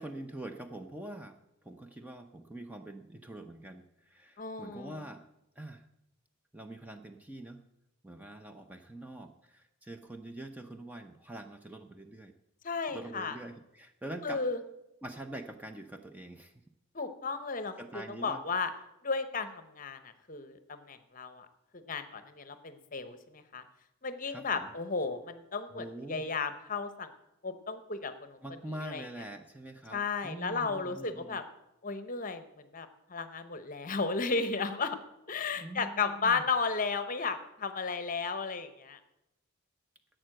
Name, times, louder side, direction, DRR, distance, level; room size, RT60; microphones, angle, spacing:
voice 1, 0.0-1.3 1.6-5.3 5.6-5.9 6.5-7.6 8.0-12.3 12.9-14.4 15.0-16.5 17.8-18.4 24.3-24.7 25.7-26.3 28.4-31.4 35.6-36.5, right 1 dB, 5° right, 6 dB, 0.5 m, -44 dB
voice 2, 4.4-5.0 12.6-13.4 14.2-14.6 16.9-17.7 18.1-18.7 19.0-20.0 20.3-21.5 21.7-23.6 24.0-27.1 27.4-28.4 28.8-29.0 29.9-31.4 31.8-32.4 32.7-35.0 35.3-39.0, left 4 dB, 35° left, 11 dB, 0.8 m, -34 dB
11.5 x 7.7 x 7.7 m, 0.86 s
head